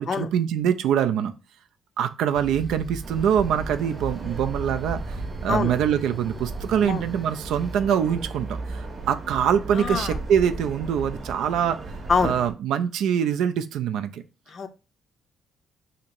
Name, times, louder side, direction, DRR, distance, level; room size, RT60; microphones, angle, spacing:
voice 1, 0.0-1.3 2.0-11.8 12.2-14.2, right 8 dB, 85° right, 9 dB, 0.3 m, -24 dB
sound 1, 2.3-7.8, equal, 5° right, 0.6 m, -41 dB
sound 2, 3.0-12.5, right 3 dB, 50° right, 0.8 m, -35 dB
voice 2, 9.8-10.2 12.1-12.3 14.5-14.7, left 5 dB, 50° left, 10 dB, 0.4 m, -24 dB
2.9 x 2.6 x 4.1 m, 0.30 s
cardioid pair, 90°, 0 cm